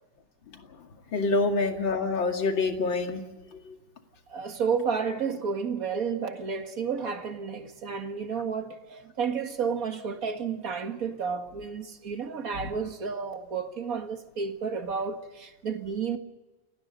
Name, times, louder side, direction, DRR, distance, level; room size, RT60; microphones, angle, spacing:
voice 1, 1.1-3.2, left 3 dB, 60° left, 3.0 m, -26 dB
voice 2, 4.3-16.2, right 6 dB, 45° right, 2.0 m, -31 dB
29.0 x 18.5 x 5.4 m
omnidirectional pair, 2.4 m